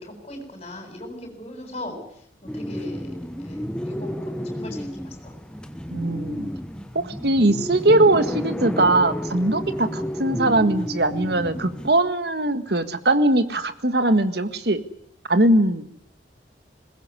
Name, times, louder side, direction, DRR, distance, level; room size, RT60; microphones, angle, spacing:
voice 1, 0.0-5.4, left 1 dB, 30° left, 3 dB, 7.8 m, -39 dB
sound 1, 2.5-11.9, equal, 5° left, 1.2 m, -31 dB
voice 2, 5.9-6.5 6.9-14.8 15.3-15.8, right 2 dB, 60° right, 10 dB, 1.7 m, -20 dB
22.0 x 20.5 x 9.8 m, 0.68 s
head